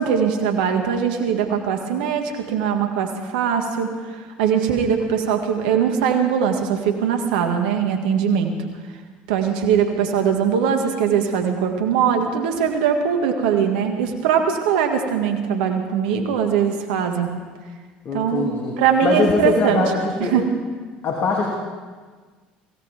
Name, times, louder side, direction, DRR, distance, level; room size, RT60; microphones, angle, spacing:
voice 1, 0.0-8.5 9.3-17.3 18.1-18.5 18.8-19.8 20.2-20.4, right 7 dB, 75° right, 4 dB, 1.9 m, -21 dB
voice 2, 18.0-20.4 21.0-21.5, left 3 dB, 50° left, -1 dB, 2.7 m, -22 dB
23.5 x 17.0 x 3.6 m, 1.4 s
hypercardioid pair, 65°, 5 cm